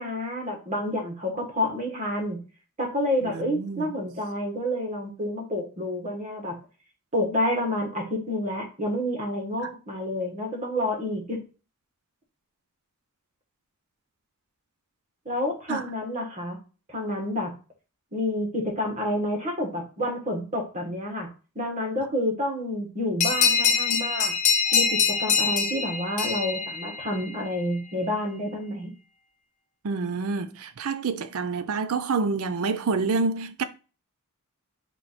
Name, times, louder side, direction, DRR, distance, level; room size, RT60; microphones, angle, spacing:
voice 1, 0.0-2.4 2.8-6.6 7.1-11.4 15.2-16.6 16.9-17.5 18.1-21.3 21.5-24.3 24.7-28.9, left 1 dB, 30° right, 1.5 m, -29 dB
voice 2, 3.2-3.9 15.7-15.9 29.8-33.6, right 4 dB, 75° right, 0.5 m, -28 dB
sound 1, 23.2-27.4, left 6 dB, 30° left, 0.6 m, -24 dB
4.5 x 2.6 x 4.2 m
head